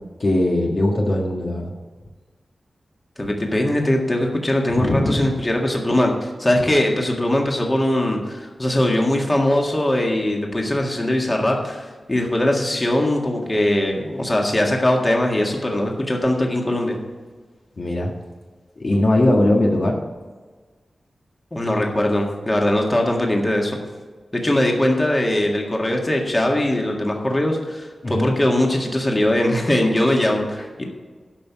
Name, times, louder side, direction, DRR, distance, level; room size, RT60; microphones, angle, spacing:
voice 1, 0.2-1.7 4.7-5.2 17.8-18.1 18.8-20.0 28.0-28.3, left 1 dB, 50° left, -1 dB, 1.5 m, -20 dB
voice 2, 3.2-17.0 21.5-23.8 24.3-30.8, left 1 dB, 20° left, 0 dB, 1.8 m, -21 dB
12.0 x 5.7 x 6.8 m, 1.4 s
wide cardioid pair, 110°, 0 cm